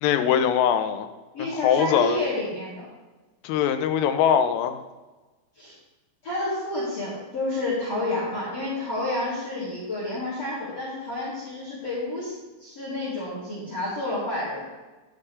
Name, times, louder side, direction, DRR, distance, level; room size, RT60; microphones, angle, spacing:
voice 1, 0.0-1.1 1.4-2.2 3.4-4.8, left 8 dB, 85° left, 8 dB, 3.4 m, -22 dB
voice 2, 1.3-2.8 5.6-5.7 6.2-12.3 12.6-14.6, left 1 dB, 35° left, -8 dB, 3.6 m, -30 dB
11.5 x 10.0 x 3.3 m, 1.2 s
omnidirectional pair, 5.7 m